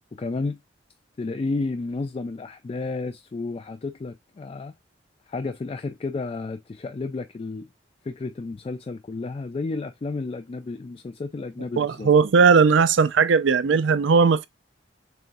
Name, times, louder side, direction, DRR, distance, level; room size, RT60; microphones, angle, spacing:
voice 1, 0.1-0.6 1.2-4.7 5.3-7.7 8.0-12.1, left 3 dB, 30° left, 0.3 m, -31 dB
voice 2, 11.8-14.5, right 5 dB, 80° right, 0.4 m, -18 dB
6.7 x 2.3 x 2.5 m
head